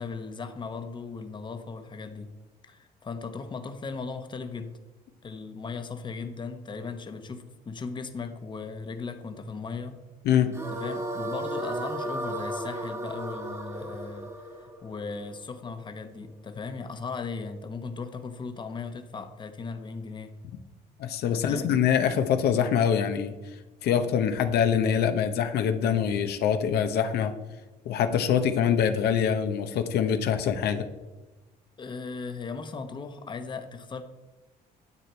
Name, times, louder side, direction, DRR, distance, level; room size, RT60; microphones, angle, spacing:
voice 1, 0.0-2.3 2.7-4.7 5.2-10.0 10.7-14.3 14.6-20.3 21.3-21.7 31.8-34.0, left 4 dB, 25° left, 8 dB, 0.9 m, -37 dB
sound 1, 10.5-15.7, right 1 dB, 15° right, 1.3 m, -35 dB
voice 2, 21.0-23.3 23.8-27.3 27.9-30.9, left 8 dB, 70° left, 8 dB, 0.9 m, -24 dB
9.8 x 8.0 x 4.4 m, 1.2 s
cardioid pair, 110°, 17 cm